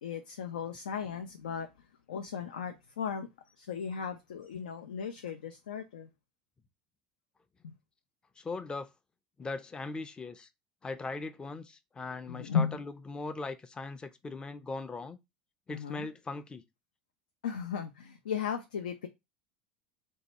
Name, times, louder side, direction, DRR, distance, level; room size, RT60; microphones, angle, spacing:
voice 1, 0.0-1.7 2.1-3.3 3.6-6.1 7.6-7.7 12.3-12.8 15.7-16.1 17.4-19.1, left 7 dB, 85° left, 0.4 m, -35 dB
voice 2, 8.4-8.9 9.4-10.5 10.8-15.2 15.7-16.6, left 3 dB, 20° left, 0.4 m, -39 dB
2.7 x 2.2 x 4.1 m
hypercardioid pair, 80°, 4 cm